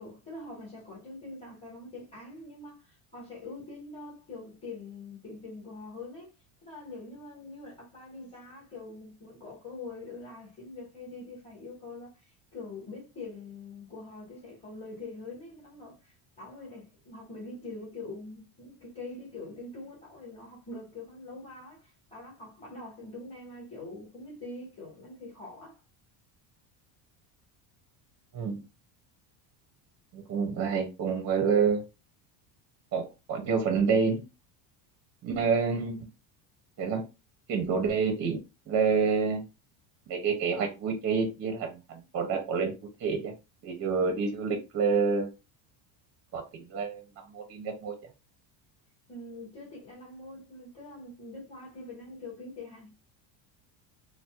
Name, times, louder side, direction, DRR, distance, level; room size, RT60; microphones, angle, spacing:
voice 1, 0.0-6.3 6.6-12.3 12.5-25.8 49.1-52.9, left 2 dB, 10° left, 1.3 m, -44 dB
voice 2, 30.1-31.8 32.9-34.2 35.2-36.0 36.8-37.0 37.5-38.4 38.7-39.4 40.1-42.7 43.0-43.3 43.6-45.3 46.3-46.4 46.7-47.0 47.3-47.9, right 5 dB, 30° right, 0.5 m, -28 dB
4.0 x 2.1 x 2.3 m
cardioid pair, 150°, 50 cm